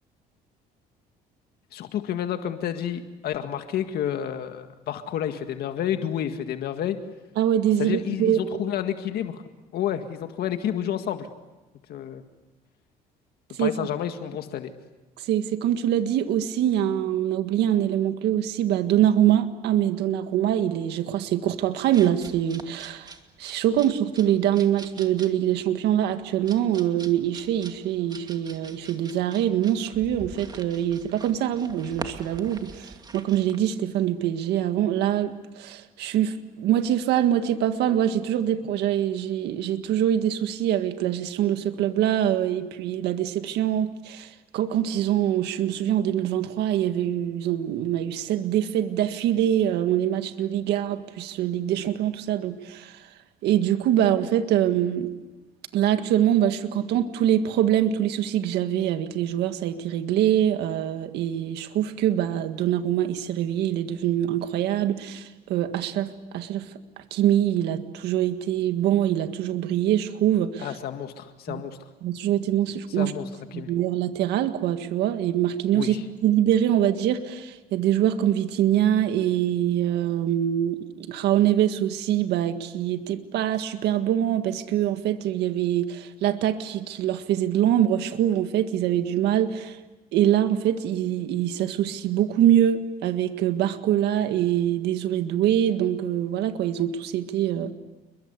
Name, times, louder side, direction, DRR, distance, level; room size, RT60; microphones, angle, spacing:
voice 1, 1.7-7.0 7.8-9.4 9.7-11.3 11.9-12.2 13.6-14.7 70.6-71.8 73.0-73.7 75.7-76.0, left 10 dB, 70° left, 1.9 m, -30 dB
voice 2, 7.4-8.6 13.6-13.7 15.2-23.1 23.4-53.1 53.4-55.1 55.7-66.7 67.1-70.7 71.5-71.6 72.0-73.1 73.5-75.9 76.2-89.8 90.1-97.7, right 11 dB, 80° right, 1.8 m, -24 dB
sound 1, 21.8-33.6, right 3 dB, 25° right, 2.5 m, -44 dB
29.5 x 22.5 x 8.2 m
cardioid pair, 110°, 17 cm